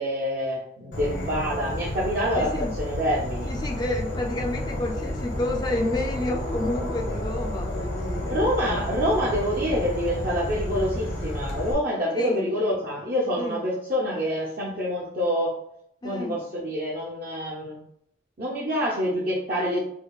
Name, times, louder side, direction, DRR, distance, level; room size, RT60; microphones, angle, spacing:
voice 1, 0.0-3.5 8.3-15.6 16.0-17.8 18.4-19.8, equal, 50° right, -5 dB, 0.6 m, -26 dB
Insect / Frog, 0.9-11.7, left 1 dB, 70° left, 0.9 m, -31 dB
voice 2, 2.4-2.7 3.5-8.9 12.1-12.5 13.4-13.6 16.0-16.4, left 2 dB, 25° left, 2 dB, 0.3 m, -30 dB
4.5 x 2.4 x 2.3 m, 0.72 s
head